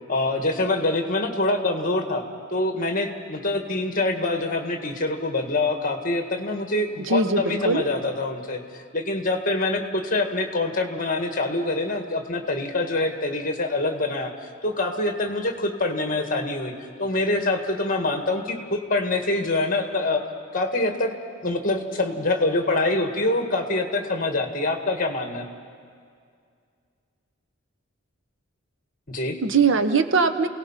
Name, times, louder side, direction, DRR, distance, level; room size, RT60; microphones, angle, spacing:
voice 1, 0.1-2.2 2.5-14.3 14.6-16.7 17.0-20.2 20.5-21.1 21.4-25.5 29.1-29.4, left 2 dB, 40° left, 5 dB, 1.8 m, -25 dB
voice 2, 7.1-7.8 29.4-30.5, right 4 dB, 65° right, 10 dB, 0.9 m, -21 dB
29.0 x 17.5 x 5.8 m, 2.2 s
head